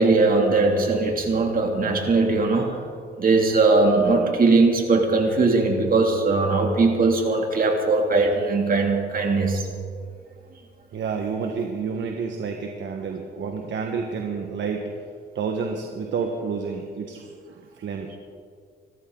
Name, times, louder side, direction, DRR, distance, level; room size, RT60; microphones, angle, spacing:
voice 1, 0.0-2.8 3.2-9.7, right 3 dB, 45° right, 2 dB, 2.9 m, -20 dB
voice 2, 10.9-14.9 15.3-18.1, right 5 dB, 65° right, 3 dB, 1.5 m, -29 dB
26.0 x 13.5 x 4.0 m, 2.1 s
cardioid pair, 90°, 20 cm